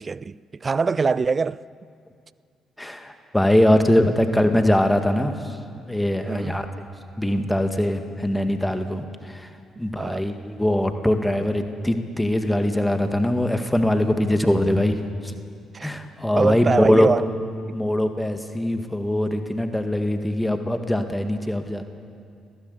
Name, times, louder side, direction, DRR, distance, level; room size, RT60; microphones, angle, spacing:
voice 1, 0.0-1.6 6.3-6.6 10.0-10.2 15.7-16.0 16.4-17.3, right 4 dB, 35° right, 0.4 m, -24 dB
voice 2, 2.8-5.6 5.9-6.7 7.2-9.5 9.8-15.3 15.8-17.1 17.7-21.8, left 1 dB, 5° left, 2.0 m, -22 dB
17.5 x 17.5 x 8.4 m
figure-of-eight pair, 45°, 0 cm